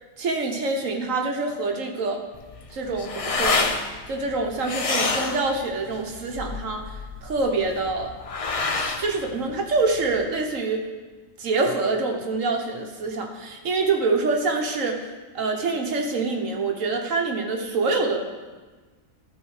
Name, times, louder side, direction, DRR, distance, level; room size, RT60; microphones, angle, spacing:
voice 1, 0.2-2.2 2.7-3.7 4.1-8.1 9.0-10.8 11.4-15.0 15.3-18.2, right 3 dB, 70° right, 2 dB, 1.5 m, -26 dB
sound 1, 2.3-10.2, left 3 dB, 35° left, 0.6 m, -28 dB
12.0 x 4.7 x 6.4 m, 1.3 s
omnidirectional pair, 1.4 m